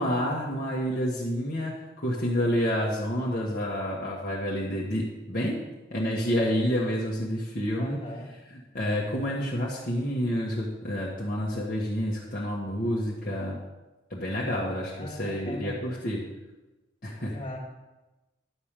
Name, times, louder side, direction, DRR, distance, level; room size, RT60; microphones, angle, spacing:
voice 1, 0.0-5.6 5.9-8.1 8.5-13.6 14.1-16.2 17.0-17.4, equal, 50° left, -5 dB, 1.4 m, -29 dB
voice 2, 7.8-8.3 15.0-15.8 17.3-17.6, left 1 dB, 30° left, -2 dB, 2.0 m, -39 dB
10.5 x 5.0 x 7.4 m, 1.1 s
head